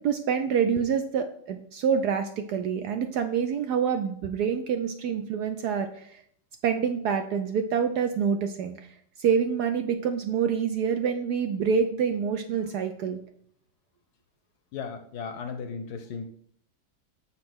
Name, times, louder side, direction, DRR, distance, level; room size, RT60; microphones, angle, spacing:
voice 1, 0.0-6.2 6.6-8.9 9.2-13.2, right 7 dB, 75° right, 7 dB, 1.0 m, -27 dB
voice 2, 14.7-16.3, left 5 dB, 65° left, 7 dB, 1.1 m, -36 dB
7.2 x 4.3 x 6.1 m, 0.63 s
omnidirectional pair, 2.1 m